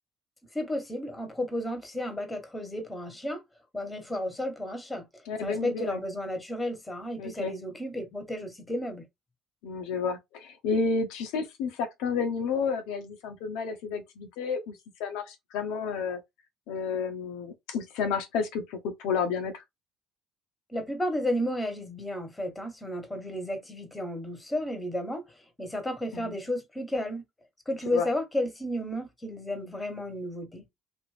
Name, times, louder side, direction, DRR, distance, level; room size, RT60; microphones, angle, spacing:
voice 1, 0.5-3.4 3.7-5.0 5.4-9.1 20.7-25.2 25.6-27.2 27.7-30.6, left 1 dB, 15° left, 1.3 m, -32 dB
voice 2, 5.3-6.0 7.2-7.5 9.6-16.2 16.7-19.6 26.1-26.3 27.9-28.1, left 5 dB, 80° left, 0.8 m, -31 dB
2.9 x 2.6 x 3.2 m
supercardioid pair, 75°, 0 cm